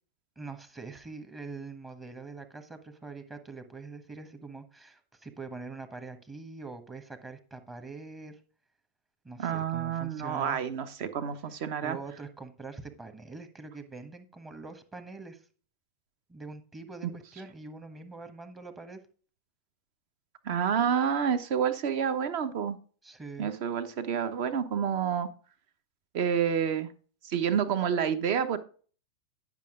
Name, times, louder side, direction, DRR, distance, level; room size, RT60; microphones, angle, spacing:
voice 1, 0.4-8.4 9.2-10.6 11.5-15.5 16.3-19.0 23.0-23.5, right 3 dB, 15° right, 8 dB, 1.4 m, -44 dB
voice 2, 9.4-12.0 17.0-17.1 20.4-22.8 23.4-25.3 26.1-26.9 27.2-28.6, right 8 dB, 45° right, 12 dB, 1.0 m, -29 dB
10.5 x 5.9 x 3.7 m, 0.40 s
figure-of-eight pair, 90°, 0 cm